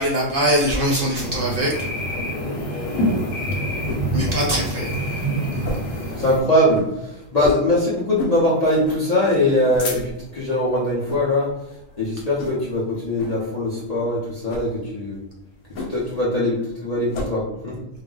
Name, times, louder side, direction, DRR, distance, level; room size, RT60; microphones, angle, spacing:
voice 1, 0.0-1.7 4.1-5.2 5.5-5.6, equal, 55° right, -3 dB, 0.6 m, -22 dB
sound 1, 1.1-6.4, right 1 dB, 90° left, 1.1 m, -26 dB
sound 2, 3.4-4.1 4.5-4.6 4.9-5.1 5.6-6.0 6.3-6.4 6.7-6.9 7.4-7.7 8.1-8.4 8.8-9.0 9.5-10.3 11.0-11.3 11.7-11.9 12.4-12.8 13.2-13.4 14.4-14.7 15.7-16.2 16.5-17.3, left 2 dB, 70° left, 0.9 m, -31 dB
voice 2, 6.2-11.5 12.0-15.2 15.9-17.7, left 1 dB, 45° left, -6 dB, 0.5 m, -21 dB
2.3 x 2.0 x 3.6 m, 0.92 s
omnidirectional pair, 1.3 m